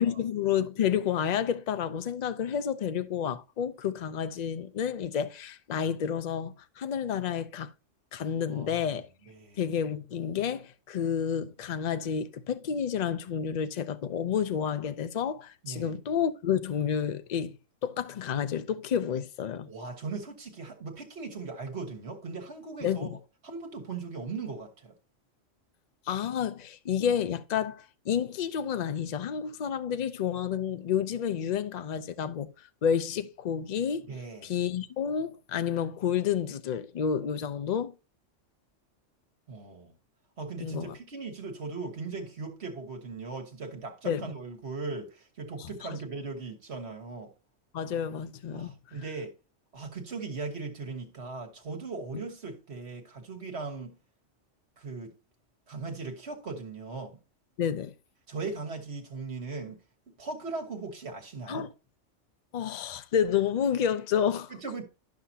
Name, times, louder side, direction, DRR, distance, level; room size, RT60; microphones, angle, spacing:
voice 1, 0.0-7.7 8.1-9.1 9.6-17.6 17.8-19.7 22.8-23.2 26.1-32.5 32.8-34.1 34.4-37.9 40.6-40.9 44.0-44.3 45.6-46.0 47.7-48.7 57.6-57.9 61.5-61.7 62.5-64.5, left 8 dB, 50° left, 0.5 m, -30 dB
voice 2, 8.5-8.9 9.3-9.6 15.6-16.0 19.7-23.1 23.4-24.9 34.1-34.5 39.5-39.9 40.4-47.3 48.5-49.3 49.7-53.9 54.8-55.1 55.7-57.2 58.3-59.8 60.1-61.7 64.5-64.8, right 4 dB, 60° right, 1.6 m, -38 dB
11.5 x 5.7 x 2.7 m
omnidirectional pair, 1.3 m